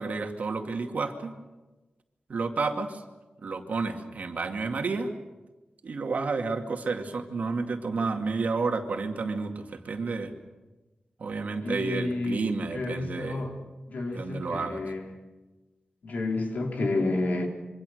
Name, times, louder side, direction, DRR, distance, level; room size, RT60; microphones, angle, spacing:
voice 1, 0.0-1.3 2.3-3.0 3.4-5.1 5.8-10.3 11.2-13.4 14.1-14.8, right 4 dB, 60° right, 4 dB, 2.3 m, -30 dB
voice 2, 11.6-13.6 13.9-15.1 16.0-17.5, left 2 dB, 65° left, 2 dB, 3.8 m, -30 dB
26.5 x 24.5 x 6.5 m, 1.1 s
wide cardioid pair, 175°, 3 cm